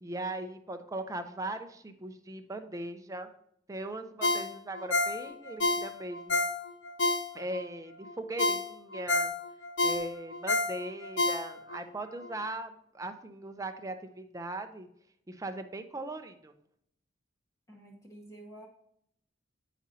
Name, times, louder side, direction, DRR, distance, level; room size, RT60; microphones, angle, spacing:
voice 1, 0.0-3.3 3.7-6.4 7.3-9.3 9.8-14.9 15.3-16.5, right 2 dB, 15° right, 7 dB, 0.5 m, -39 dB
Ringtone, 4.2-7.7 8.1-8.2 8.4-11.8 12.2-12.3, left 2 dB, 70° left, 0.7 m, -29 dB
voice 2, 17.7-18.7, right 1 dB, 15° left, -2 dB, 0.8 m, -49 dB
8.7 x 5.0 x 2.8 m, 0.70 s
head